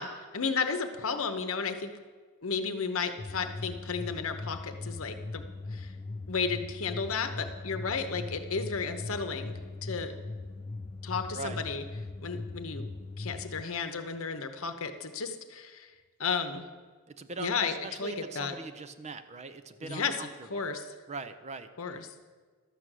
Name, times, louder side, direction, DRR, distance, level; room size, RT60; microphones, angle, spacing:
voice 1, 0.0-1.9 2.4-5.4 5.7-5.9 6.3-10.1 11.0-11.8 12.2-12.9 13.2-15.9 16.2-16.7 17.4-18.5 19.8-20.8 21.8-22.1, left 5 dB, 65° left, 8 dB, 0.9 m, -33 dB
sound 1, 3.2-13.6, left 3 dB, 25° left, 0.3 m, -40 dB
voice 2, 17.1-20.7 21.1-21.7, right 3 dB, 30° right, 10 dB, 0.6 m, -41 dB
12.5 x 8.3 x 6.2 m, 1.5 s
head